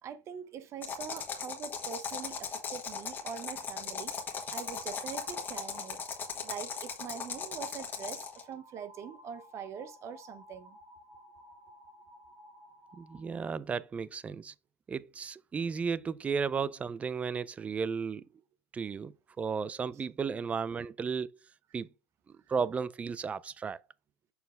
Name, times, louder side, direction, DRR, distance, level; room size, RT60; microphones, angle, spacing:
voice 1, 0.0-4.1 4.5-6.0 6.4-10.8, right 8 dB, 40° right, 0.8 m, -43 dB
sound 1, 0.8-8.4, left 6 dB, 25° left, 1.5 m, -38 dB
sound 2, 4.2-13.5, equal, 65° right, 3.4 m, -56 dB
voice 2, 13.0-14.5 14.9-18.3 18.7-21.3 21.7-21.9 22.5-23.8, right 5 dB, 15° right, 0.3 m, -34 dB
6.8 x 4.0 x 3.5 m
supercardioid pair, 115°, 8 cm